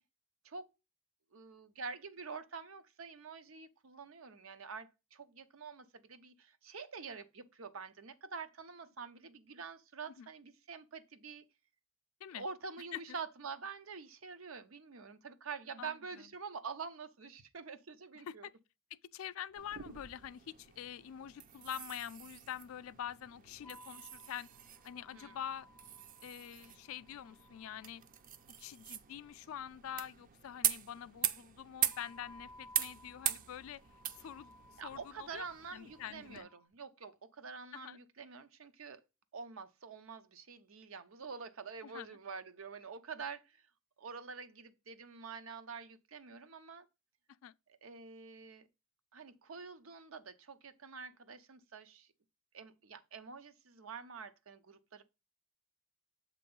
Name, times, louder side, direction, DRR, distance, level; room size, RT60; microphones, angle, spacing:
voice 1, 1.3-11.4 12.3-18.5 25.1-25.4 34.8-39.0 39.3-43.6 44.0-46.9 47.8-48.7 49.1-52.1 52.5-55.0, right 5 dB, 85° right, 0.8 m, -47 dB
voice 2, 15.8-16.3 18.1-18.5 18.9-24.5 24.8-25.7 26.2-28.0 28.6-33.8 34.2-34.6 34.8-35.4 35.7-36.5 37.7-38.0 41.8-42.2 47.4-47.5, left 9 dB, 90° left, 0.3 m, -45 dB
sound 1, 19.5-36.4, right 10 dB, 40° right, 0.5 m, -42 dB
sound 2, 23.6-29.0 31.9-36.7, left 2 dB, 15° left, 0.4 m, -60 dB
7.7 x 3.0 x 5.3 m
head